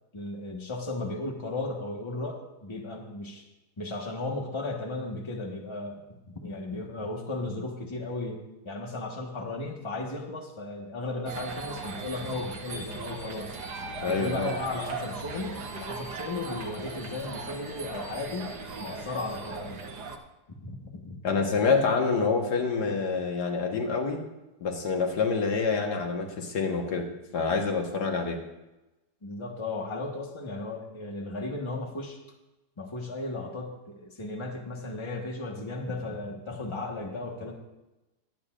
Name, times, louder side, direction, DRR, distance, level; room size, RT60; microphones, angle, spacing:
voice 1, 0.1-3.4 3.8-13.6 14.0-19.8 20.5-21.4 29.2-32.2 32.8-37.5, left 2 dB, 20° left, 0 dB, 1.3 m, -35 dB
sound 1, 11.3-20.2, right 4 dB, 80° right, 1.6 m, -38 dB
voice 2, 14.0-14.6 21.2-24.2 24.6-27.0 27.3-28.4, left 4 dB, 85° left, 2 dB, 1.9 m, -27 dB
22.0 x 8.4 x 2.5 m, 1.0 s
omnidirectional pair, 1.7 m